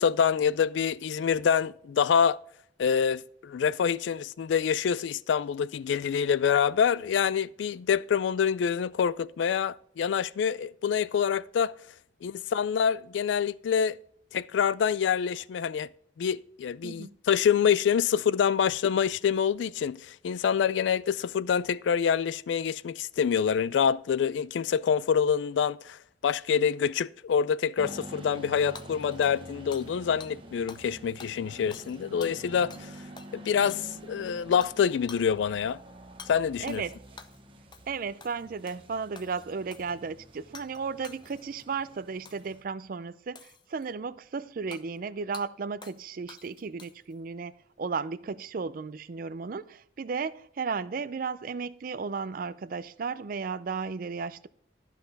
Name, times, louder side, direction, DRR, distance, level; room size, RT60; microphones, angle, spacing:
voice 1, 0.0-2.4 2.8-11.7 12.2-14.0 14.3-15.9 16.2-32.9 33.3-35.8 36.3-36.8, left 7 dB, 85° left, 0.3 m, -26 dB
voice 2, 16.8-17.1 36.6-37.0 37.9-54.5, right 5 dB, 50° right, 0.4 m, -34 dB
sound 1, 27.8-42.6, right 1 dB, 30° right, 0.9 m, -47 dB
Hammer / Shatter, 28.8-30.0 30.2-30.3 30.7-30.9 31.2-32.9 33.2-33.3 33.7-34.1 34.6-34.8 35.1-35.3 36.2-36.3 36.7-37.4 37.7-38.0 38.2-38.8 39.2-40.0 40.5-40.8 41.0-41.6 42.3-42.6 43.4-43.9 44.7-44.8 45.3-45.5 45.8-46.0 46.3-47.1, left 5 dB, 25° left, 0.6 m, -49 dB
12.5 x 5.9 x 4.1 m
head